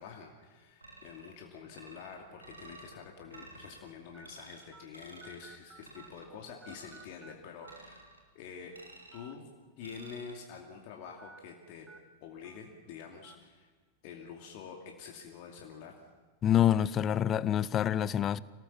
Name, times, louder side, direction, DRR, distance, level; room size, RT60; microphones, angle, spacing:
voice 1, 0.0-8.0 8.3-8.7 9.1-9.5 9.8-11.9 12.2-13.7 14.0-16.0, left 6 dB, 45° left, 2.5 m, -47 dB
sound 1, 0.8-1.4 1.7-2.9 3.3-3.8 4.2-4.6 4.9-5.4 5.8-6.3 6.6-7.1 7.6-8.2 8.7-9.3 9.8-10.3, right 2 dB, 80° right, 2.9 m, -52 dB
sound 2, 1.2-1.4 2.1-2.2 3.3-3.5 4.1-4.3 4.7-4.8 5.2-6.4 6.6-7.3 7.6-7.8 9.0-9.3 9.7-9.8 11.2-11.4 11.9-12.0 12.4-12.6 13.2-13.4, right 4 dB, 15° right, 2.8 m, -54 dB
voice 2, 16.4-18.4, left 10 dB, 30° left, 0.7 m, -26 dB
26.5 x 18.0 x 7.4 m
figure-of-eight pair, 90°, 0 cm